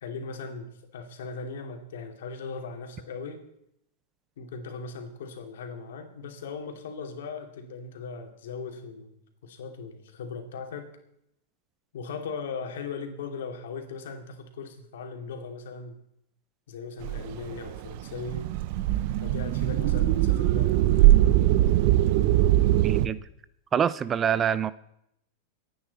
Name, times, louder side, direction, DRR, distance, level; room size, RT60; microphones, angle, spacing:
voice 1, 0.0-3.4 4.4-10.9 11.9-16.0 16.7-18.5 19.2-21.2, left 5 dB, 85° left, 4 dB, 2.6 m, -38 dB
sound 1, 17.0-23.1, right 14 dB, 55° right, 0.7 m, -22 dB
voice 2, 22.7-23.2 23.7-24.7, right 8 dB, 25° right, 17 dB, 0.5 m, -25 dB
25.5 x 9.5 x 4.2 m, 0.77 s
supercardioid pair, 135°, 0 cm